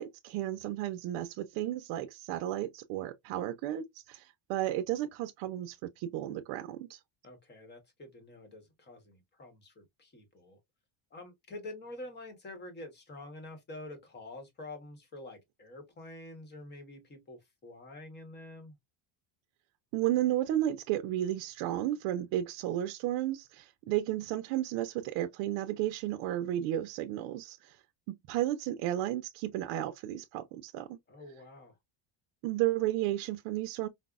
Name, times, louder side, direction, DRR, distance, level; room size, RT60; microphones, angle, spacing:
voice 1, 0.0-7.0 19.9-27.8 28.1-31.0 32.4-33.9, right 13 dB, 65° right, 0.6 m, -33 dB
voice 2, 7.2-10.6 11.1-18.7 31.1-31.8, left 2 dB, 20° left, 0.9 m, -47 dB
4.9 x 2.0 x 2.3 m
cardioid pair, 170°, 49 cm